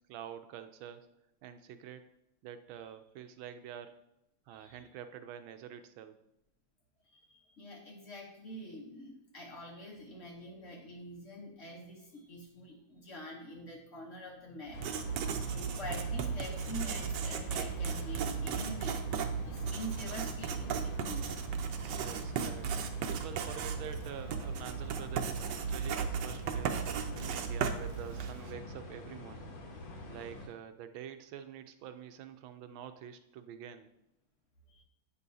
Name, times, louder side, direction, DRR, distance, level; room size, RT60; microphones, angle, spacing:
voice 1, 0.1-1.1 1.4-2.0 2.4-4.0 4.5-6.2 21.8-22.7 23.1-26.8 27.2-29.6 30.1-33.9, right 9 dB, 85° right, 9 dB, 1.4 m, -47 dB
voice 2, 7.1-14.8 15.4-19.1 19.4-21.3 34.7-34.8, equal, 50° left, -1 dB, 1.1 m, -46 dB
sound 1, 14.7-30.5, left 1 dB, 80° left, 1.8 m, -46 dB
Writing, 14.7-28.5, right 6 dB, 70° right, 1.1 m, -36 dB
8.8 x 5.5 x 2.7 m, 0.84 s
omnidirectional pair, 2.2 m